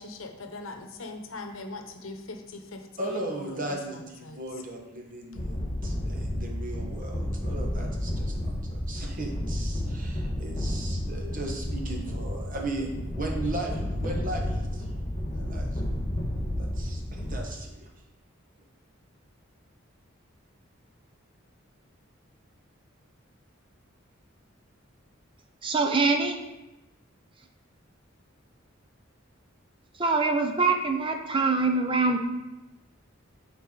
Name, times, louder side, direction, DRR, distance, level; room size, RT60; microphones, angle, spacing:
voice 1, 0.0-4.4 5.3-5.4, left 2 dB, 80° left, 5 dB, 0.8 m, -41 dB
voice 2, 3.0-15.9 16.6-17.9, right 2 dB, 40° right, 1 dB, 1.1 m, -37 dB
sound 1, 5.3-17.4, left 1 dB, 30° left, 1.3 m, -31 dB
voice 3, 25.6-26.4 30.0-32.3, right 3 dB, 25° right, 4 dB, 0.5 m, -24 dB
8.9 x 4.0 x 3.8 m, 1.0 s
head